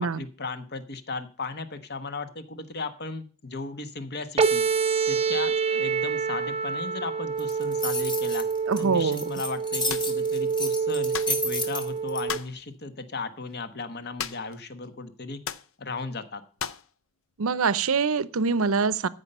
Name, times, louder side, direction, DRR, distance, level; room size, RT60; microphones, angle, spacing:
voice 1, 0.0-4.6 5.1-8.5 8.8-15.4 15.8-16.4, left 3 dB, 50° left, 10 dB, 1.2 m, -36 dB
sound 1, 4.4-12.4, right 5 dB, 30° right, 0.6 m, -27 dB
sound 2, 7.4-12.2, left 2 dB, 20° left, 2.1 m, -32 dB
voice 2, 8.7-9.2 17.4-19.1, right 5 dB, 70° right, 17 dB, 0.6 m, -24 dB
sound 3, 9.9-10.1 11.1-11.4 12.3-12.6 14.2-14.6 14.8-14.9 15.4-15.7 16.6-16.9, left 8 dB, 65° left, 0.6 m, -34 dB
14.5 x 5.5 x 5.4 m, 0.39 s
head